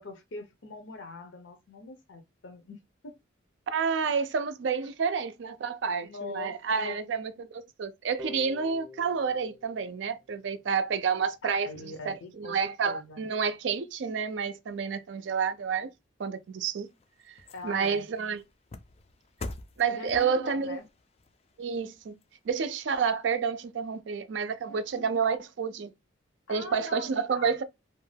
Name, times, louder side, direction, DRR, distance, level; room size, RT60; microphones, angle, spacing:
voice 1, 0.0-3.2 6.0-7.0 11.4-13.3 17.5-18.1 19.9-20.8 24.7-25.1 26.5-27.5, left 3 dB, 75° left, 0.6 m, -43 dB
voice 2, 3.7-11.7 12.0-15.9 16.2-16.9 17.6-18.4 19.8-20.8 21.6-22.2 22.5-25.9 26.5-27.6, right 6 dB, 65° right, 0.4 m, -29 dB
sound 1, 8.2-11.0, left 3 dB, 15° right, 0.6 m, -47 dB
sound 2, 16.4-22.9 23.4-23.5, left 2 dB, 30° left, 0.3 m, -47 dB
2.5 x 2.2 x 3.2 m
head